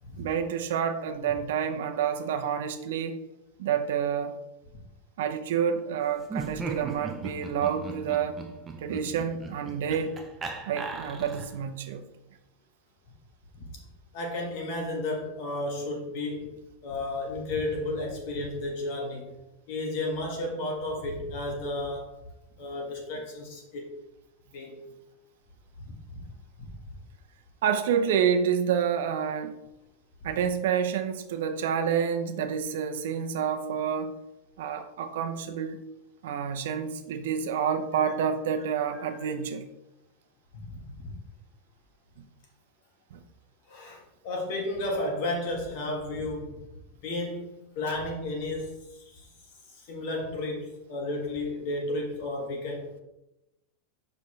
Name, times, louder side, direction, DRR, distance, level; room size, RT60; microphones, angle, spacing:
voice 1, 0.2-3.2 3.6-4.4 5.2-8.4 8.8-10.1 10.7-12.0 27.6-29.5 30.2-34.1 34.6-35.8 36.2-39.6 42.2-42.3 43.1-43.2, right 7 dB, 75° right, 7 dB, 0.7 m, -28 dB
Laughter, 6.2-11.7, right 4 dB, 15° right, 0.6 m, -38 dB
voice 2, 14.1-16.5 16.8-19.3 19.7-22.2 22.6-23.9 24.5-24.8 25.8-26.3 26.6-26.7 38.0-38.1 38.9-39.0 40.5-41.1 43.7-46.6 47.0-49.3 49.7-52.9, left 2 dB, 50° left, 0 dB, 1.6 m, -33 dB
6.7 x 5.3 x 3.2 m, 0.93 s
supercardioid pair, 170°, 0 cm